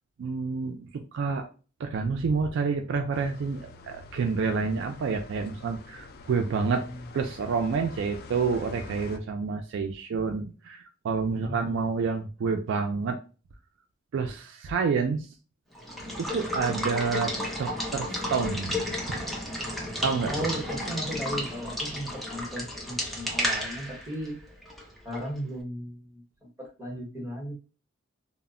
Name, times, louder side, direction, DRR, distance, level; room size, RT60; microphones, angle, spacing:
voice 1, 0.2-1.5 1.8-6.9 7.1-13.2 14.1-15.3 16.0-17.3 17.6-18.8 19.1-19.2 20.0-20.5, right 5 dB, 65° right, 5 dB, 0.3 m, -28 dB
sound 1, 3.1-9.2, left 3 dB, 50° left, 0.3 m, -46 dB
voice 2, 11.3-11.8 20.3-24.4 25.0-27.5, equal, 15° right, -2 dB, 1.0 m, -36 dB
Water / Water tap faucet / Liquid, 15.7-25.4, left 1 dB, ahead, 0.6 m, -32 dB
2.1 x 2.0 x 3.6 m, 0.34 s
head